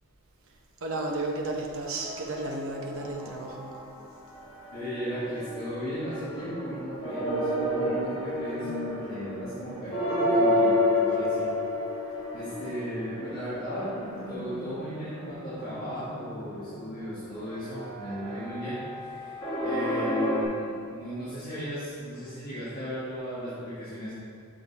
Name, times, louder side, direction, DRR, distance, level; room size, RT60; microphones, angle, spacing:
voice 1, 0.8-3.7, right 2 dB, 70° right, -1 dB, 0.9 m, -33 dB
sound 1, 1.8-4.0 4.3-20.4, left 1 dB, 25° left, 1.6 m, -31 dB
voice 2, 4.7-11.5 11.8-11.9 12.3-13.9 14.3-24.1, equal, 45° left, -12 dB, 1.7 m, -36 dB
6.6 x 6.4 x 4.1 m, 2.2 s
head